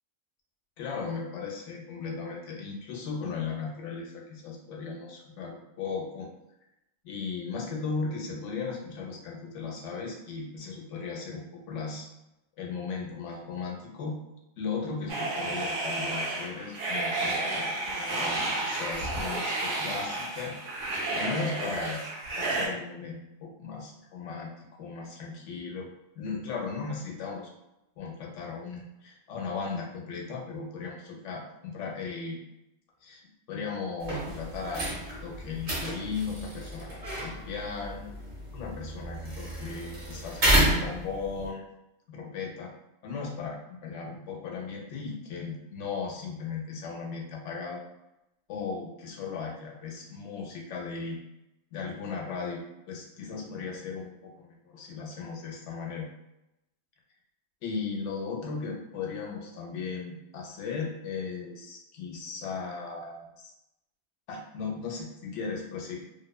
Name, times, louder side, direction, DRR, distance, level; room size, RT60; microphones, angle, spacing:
voice 1, 0.8-6.3 7.0-12.1 12.6-14.2 14.6-20.5 21.1-22.0 22.4-24.5 24.8-25.9 26.2-27.5 28.0-32.4 33.0-33.2 33.5-38.1 38.5-41.6 42.1-42.7 43.0-47.8 48.5-51.2 51.7-52.6 52.9-56.1 57.6-63.5 64.3-66.0, left 5 dB, 75° left, -1 dB, 0.9 m, -36 dB
sound 1, 15.1-22.7, right 2 dB, 90° right, 1.0 m, -31 dB
sound 2, 34.0-41.5, right 1 dB, 40° right, 0.6 m, -31 dB
2.6 x 2.1 x 2.2 m, 0.90 s
omnidirectional pair, 1.3 m